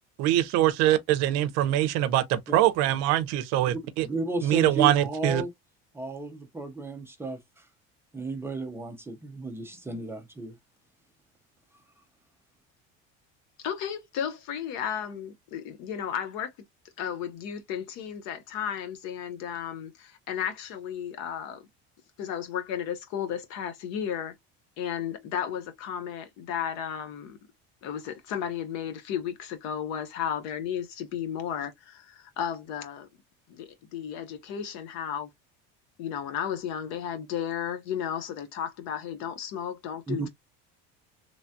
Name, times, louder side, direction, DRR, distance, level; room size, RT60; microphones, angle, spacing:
voice 1, 0.2-4.1 4.4-5.4, right 13 dB, 65° right, 0.6 m, -23 dB
voice 2, 4.0-5.5 5.9-7.6 8.1-10.5 40.1-40.3, right 2 dB, 10° right, 0.4 m, -33 dB
voice 3, 13.6-16.5 17.0-21.7 22.2-24.4 24.8-27.4 27.8-33.1 33.5-35.3 36.0-40.3, left 8 dB, 65° left, 0.8 m, -34 dB
3.2 x 2.2 x 2.6 m
cardioid pair, 165°, 29 cm